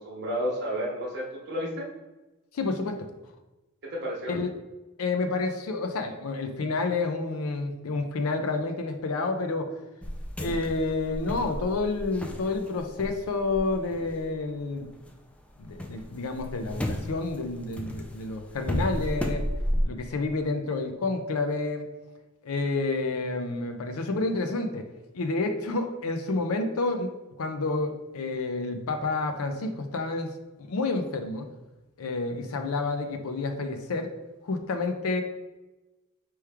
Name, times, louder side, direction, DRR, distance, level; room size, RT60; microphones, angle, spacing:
voice 1, 0.0-1.9 3.8-4.3 32.3-32.4, equal, 50° right, -3 dB, 0.9 m, -32 dB
voice 2, 2.5-3.1 4.3-4.5 5.0-9.7 10.4-14.9 15.6-19.5 19.9-21.9 22.4-24.9 25.1-27.1 27.4-30.3 30.6-31.5 32.0-34.1 34.4-35.2, left 3 dB, 70° left, 6 dB, 0.5 m, -29 dB
sound 1, 10.0-15.1 15.5-19.8, equal, 5° left, 0.3 m, -33 dB
4.6 x 3.1 x 3.4 m, 1.1 s
head